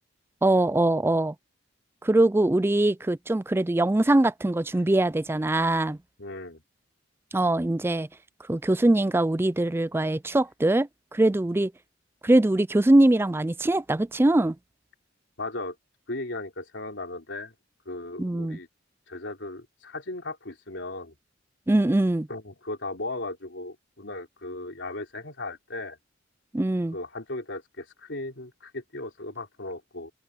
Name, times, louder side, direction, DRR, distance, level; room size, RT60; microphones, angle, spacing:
voice 1, 0.4-1.3 2.0-6.0 7.3-8.1 8.5-11.7 12.2-14.6 18.2-18.6 21.7-22.3 26.5-27.0, right 1 dB, 10° right, 0.4 m, -22 dB
voice 2, 6.2-6.6 15.4-15.8 16.1-17.5 17.9-18.7 19.1-21.1 22.3-26.0 26.9-30.1, left 2 dB, 65° left, 4.0 m, -36 dB
open air
head